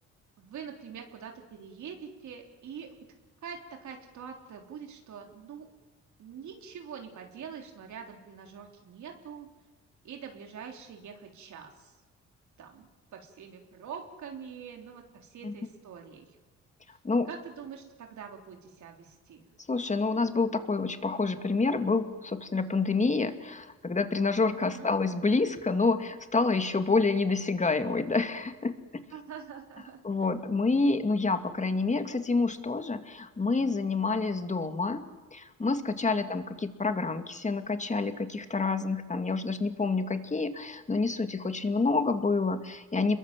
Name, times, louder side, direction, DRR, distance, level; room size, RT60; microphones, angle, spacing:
voice 1, 0.4-3.0 3.4-5.7 6.2-9.5 10.0-11.9 12.6-12.9 13.1-16.4 17.3-19.5 24.5-24.9 29.1-30.3 36.1-36.3, right 7 dB, 70° right, 2 dB, 3.6 m, -44 dB
voice 2, 19.7-28.7 30.0-35.0 35.3-43.2, left 3 dB, 25° left, 8 dB, 2.2 m, -28 dB
28.0 x 22.0 x 7.6 m, 1.3 s
cardioid pair, 90°, 30 cm